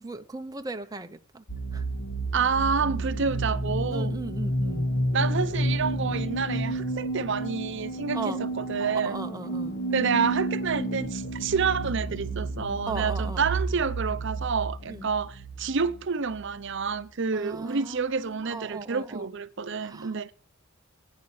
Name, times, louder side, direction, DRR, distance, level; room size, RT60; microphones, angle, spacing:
voice 1, 0.0-1.4 1.7-1.8 3.9-4.9 8.1-8.5 9.0-9.7 12.9-13.4 14.9-15.1 17.3-19.3 19.8-20.3, right 3 dB, 15° right, 0.6 m, -37 dB
sound 1, 1.5-17.0, right 1 dB, 55° left, 1.8 m, -31 dB
voice 2, 2.3-4.2 5.1-9.2 9.9-20.3, right 5 dB, 60° right, 0.7 m, -28 dB
19.0 x 9.5 x 3.2 m
head